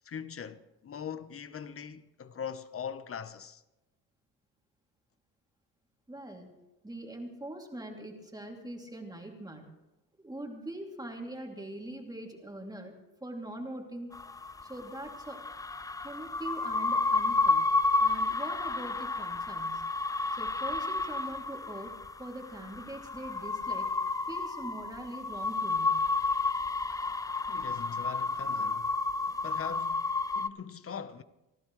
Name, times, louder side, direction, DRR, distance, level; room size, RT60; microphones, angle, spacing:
voice 1, 0.0-3.6 27.5-29.0 29.3-31.2, left 7 dB, 40° left, 1.0 m, -41 dB
voice 2, 6.1-6.5 6.8-9.7 10.2-12.9 13.2-14.1 14.7-15.4 16.0-17.7 18.0-19.9 20.3-23.9 24.3-26.0, right 1 dB, 10° right, 2.8 m, -42 dB
sound 1, 14.1-30.5, left 3 dB, 10° left, 0.4 m, -31 dB
28.5 x 11.5 x 3.2 m
supercardioid pair, 80°, 36 cm